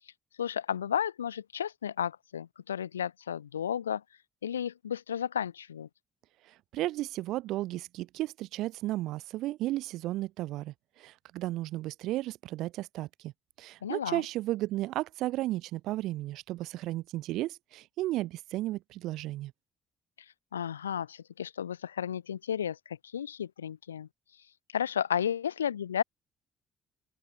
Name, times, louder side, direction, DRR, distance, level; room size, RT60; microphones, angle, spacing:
voice 1, 0.4-4.0 4.4-5.9 13.8-14.2 20.5-24.1 24.7-26.0, left 9 dB, 90° left, 0.8 m, -33 dB
voice 2, 6.7-10.7 11.0-13.3 13.6-19.5, right 16 dB, 70° right, 0.8 m, -34 dB
open air
hypercardioid pair, 50°, 0 cm